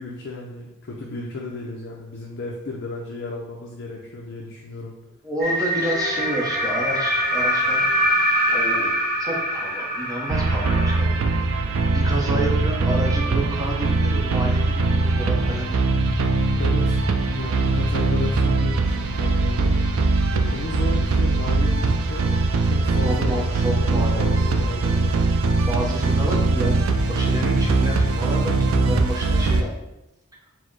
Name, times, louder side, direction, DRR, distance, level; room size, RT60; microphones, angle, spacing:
voice 1, 0.0-5.0 16.6-19.8 20.3-22.3 22.6-25.3, left 2 dB, 50° left, -1 dB, 0.5 m, -34 dB
voice 2, 5.2-8.0 8.5-11.3 11.9-16.2 18.9-19.1 23.0-24.5 25.7-29.7, right 1 dB, 15° right, -2 dB, 0.7 m, -30 dB
sound 1, 5.4-11.0, equal, 40° right, 0.9 m, -23 dB
sound 2, 10.3-29.6, right 3 dB, 65° right, 0.4 m, -21 dB
4.3 x 2.1 x 4.5 m, 0.92 s
head